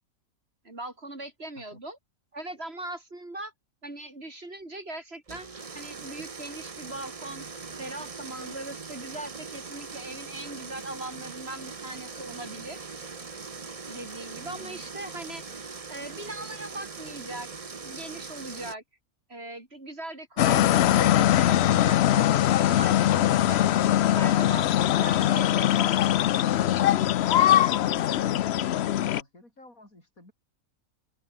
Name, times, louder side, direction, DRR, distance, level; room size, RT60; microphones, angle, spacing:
voice 1, 0.6-2.0 2.3-3.5 3.8-5.5 5.7-7.4 7.8-12.9 13.9-17.5 17.8-18.8 19.3-22.3 22.6-23.6 24.0-25.8, right 2 dB, 45° right, 4.4 m, -40 dB
sound 1, 5.3-18.8, right 4 dB, 30° right, 1.0 m, -41 dB
voice 2, 14.4-14.8 27.5-30.3, left 1 dB, 85° left, 8.6 m, -50 dB
sound 2, 20.4-29.2, left 12 dB, 60° left, 0.7 m, -22 dB
omnidirectional pair, 1.4 m